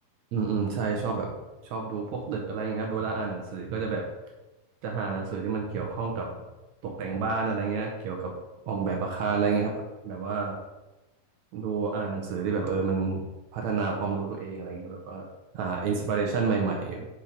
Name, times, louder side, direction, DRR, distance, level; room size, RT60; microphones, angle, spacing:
voice 1, 0.3-1.3 1.6-4.1 4.8-6.3 6.8-8.3 8.7-10.6 11.5-13.3 13.5-15.2 15.5-17.1, right 5 dB, 75° right, 1 dB, 1.7 m, -29 dB
5.7 x 4.4 x 5.0 m, 1.1 s
omnidirectional pair, 4.1 m